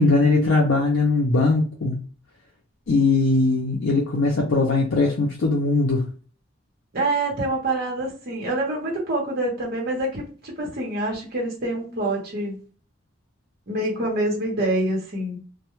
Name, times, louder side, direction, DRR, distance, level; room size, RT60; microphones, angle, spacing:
voice 1, 0.0-2.0 2.9-6.0, left 3 dB, 70° left, -2 dB, 0.5 m, -20 dB
voice 2, 6.9-12.6 13.7-15.4, right 2 dB, 50° right, -2 dB, 0.8 m, -26 dB
2.1 x 2.0 x 2.9 m, 0.39 s
head